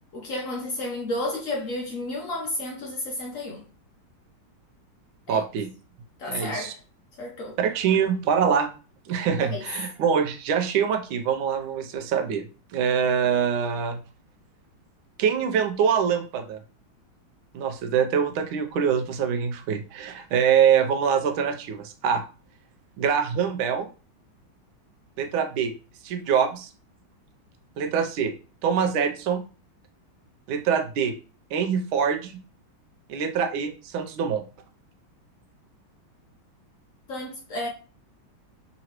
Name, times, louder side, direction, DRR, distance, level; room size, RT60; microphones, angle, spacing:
voice 1, 0.1-3.6 5.3-5.4 6.2-6.8 7.2-7.6 9.4-9.6 37.1-37.7, left 1 dB, 75° left, 0.7 m, -32 dB
voice 2, 5.3-5.7 6.3-6.7 7.6-8.7 9.1-12.5 12.7-14.0 15.2-16.6 17.5-22.2 23.0-23.9 25.2-25.7 26.0-26.7 27.8-28.3 28.6-29.4 30.5-31.1 31.5-32.4 33.1-34.4, right 7 dB, 80° right, 1.4 m, -24 dB
3.9 x 2.9 x 2.9 m
omnidirectional pair, 2.2 m